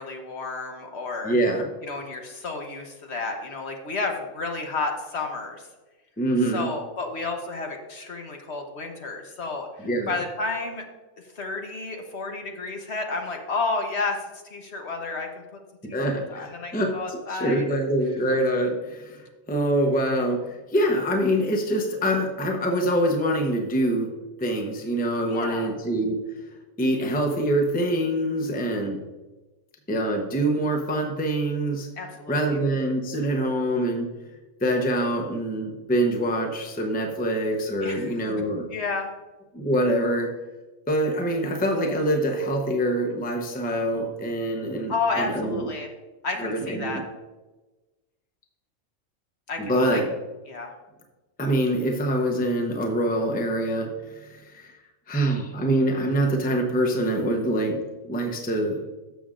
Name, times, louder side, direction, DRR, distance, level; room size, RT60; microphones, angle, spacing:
voice 1, 0.0-1.3 1.8-5.6 6.5-10.8 11.4-14.2 14.5-15.4 15.9-17.6 25.2-25.7 28.6-28.9 32.0-32.6 37.8-38.1 38.7-39.1 44.9-45.9 46.2-47.0 49.5-50.0 50.5-50.7, left 3 dB, 55° left, 3 dB, 1.3 m, -31 dB
voice 2, 1.2-1.7 6.2-6.7 9.8-10.2 15.9-24.1 24.4-26.2 26.8-29.0 29.9-31.9 32.3-34.1 34.6-38.7 39.5-40.3 40.9-45.7 46.4-47.0 49.6-50.1 51.4-54.7 55.1-58.8, right 1 dB, 10° left, 3 dB, 0.7 m, -25 dB
12.5 x 7.0 x 2.5 m, 1.2 s
omnidirectional pair, 1.4 m